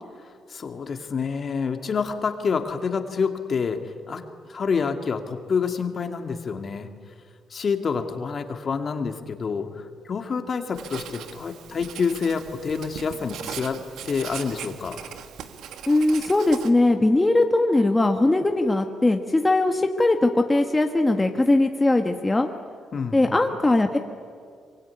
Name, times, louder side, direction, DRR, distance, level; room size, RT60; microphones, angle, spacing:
voice 1, 0.5-4.2 4.5-6.9 7.5-15.0 22.9-23.3, left 5 dB, 45° left, 7 dB, 2.3 m, -28 dB
Writing, 10.7-16.7, right 8 dB, 80° right, 1.8 m, -39 dB
voice 2, 15.9-22.5 23.1-24.0, left 2 dB, 15° left, 5 dB, 1.5 m, -20 dB
24.0 x 23.5 x 9.9 m, 2.1 s
cardioid pair, 90°, 0 cm